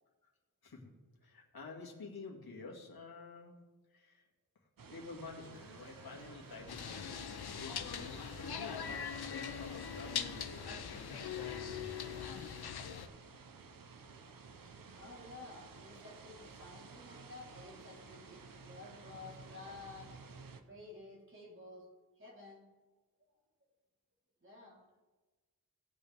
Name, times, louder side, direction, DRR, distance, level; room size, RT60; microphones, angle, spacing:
voice 1, 1.2-3.6 3.9-4.2 4.9-12.1, left 3 dB, 70° left, 0 dB, 2.2 m, -50 dB
sound 1, 4.8-20.6, right 4 dB, 60° right, 0.9 m, -54 dB
sound 2, 5.5-13.1, equal, 10° right, 2.9 m, -63 dB
sound 3, 6.7-13.1, left 7 dB, 90° left, 0.8 m, -41 dB
voice 2, 14.9-20.1 20.6-21.9 22.2-22.6 24.4-24.8, left 3 dB, 35° right, -4 dB, 3.7 m, -52 dB
17.5 x 8.6 x 3.5 m, 1.3 s
wide cardioid pair, 115°, 37 cm